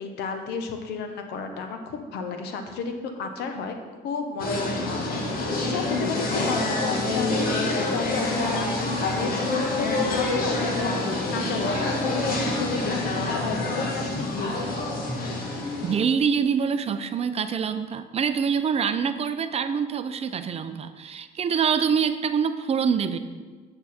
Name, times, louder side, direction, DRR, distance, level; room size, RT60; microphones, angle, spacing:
voice 1, 0.0-3.7 4.0-5.2 5.7-14.8, left 4 dB, 80° left, 6 dB, 1.1 m, -33 dB
sound 1, 4.4-15.9, left 2 dB, 60° left, 1.8 m, -26 dB
voice 2, 15.8-23.2, right 6 dB, 35° right, 10 dB, 0.6 m, -25 dB
8.6 x 6.9 x 4.3 m, 1.4 s
cardioid pair, 110°, 17 cm